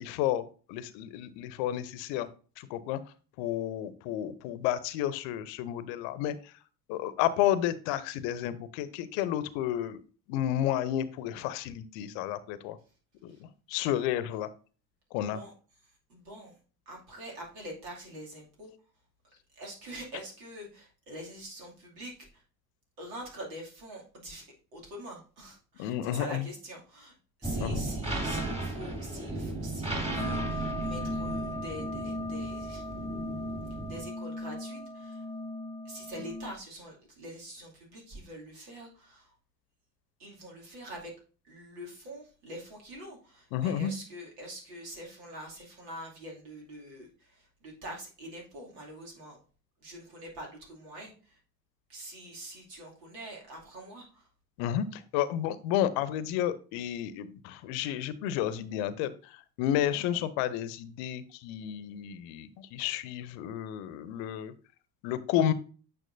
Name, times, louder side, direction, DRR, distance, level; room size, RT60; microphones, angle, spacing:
voice 1, 0.0-2.3 2.6-3.0 3.4-6.5 6.9-10.0 10.3-12.8 13.2-14.5 15.1-15.4 25.8-26.5 27.6-27.9 43.5-43.9 54.6-64.5 65.0-65.5, left 11 dB, 65° left, 15 dB, 0.8 m, -31 dB
voice 2, 15.8-16.6 16.9-18.7 19.6-22.4 23.0-24.5 24.7-32.9 33.9-35.2 35.8-39.3 40.2-41.1 41.4-49.4 49.8-51.4 51.9-54.3, right 1 dB, 75° right, -1 dB, 2.7 m, -45 dB
sound 1, 27.4-34.1, right 2 dB, 10° right, 2.9 m, -35 dB
sound 2, 30.2-36.5, left 2 dB, 10° left, 0.4 m, -38 dB
9.1 x 5.9 x 2.6 m, 0.37 s
figure-of-eight pair, 50°, 50 cm